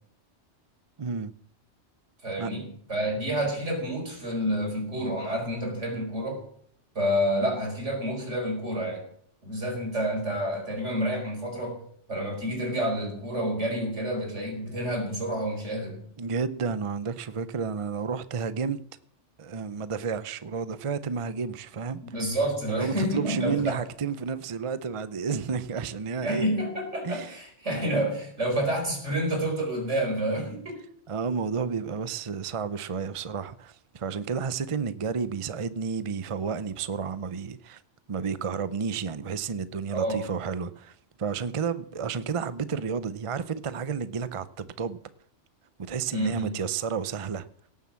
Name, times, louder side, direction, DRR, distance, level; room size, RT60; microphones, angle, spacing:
voice 1, 1.0-1.3 2.4-2.5 16.2-18.8 19.4-22.2 22.7-26.5 27.0-27.4 31.1-37.8 38.1-45.0 45.9-47.5, right 5 dB, 35° right, 0.6 m, -31 dB
voice 2, 2.2-6.4 6.9-9.1 9.4-11.8 12.1-16.0 22.1-23.8 26.2-30.8 39.9-40.2 46.1-46.5, equal, 85° right, 5.0 m, -29 dB
18.0 x 7.5 x 7.4 m
omnidirectional pair, 1.2 m